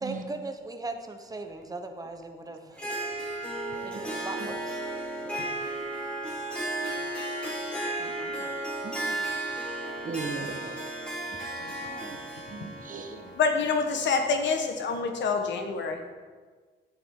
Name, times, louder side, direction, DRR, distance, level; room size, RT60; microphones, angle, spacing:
voice 1, 0.0-2.8 3.8-5.4 11.9-12.3, right 2 dB, 20° right, 6 dB, 1.0 m, -39 dB
Harp, 2.7-14.6, right 1 dB, 5° left, 3.2 m, -34 dB
voice 2, 8.0-8.5 9.5-9.6 10.2-10.8 11.4-11.9 13.2-13.4, right 9 dB, 75° right, 9 dB, 0.8 m, -53 dB
voice 3, 8.8-9.2 10.0-10.8 11.3-11.4 12.5-13.4, right 4 dB, 40° right, 4 dB, 1.2 m, -37 dB
voice 4, 13.3-16.0, left 4 dB, 65° left, 5 dB, 1.3 m, -26 dB
11.0 x 7.6 x 3.8 m, 1.5 s
cardioid pair, 90°, 20 cm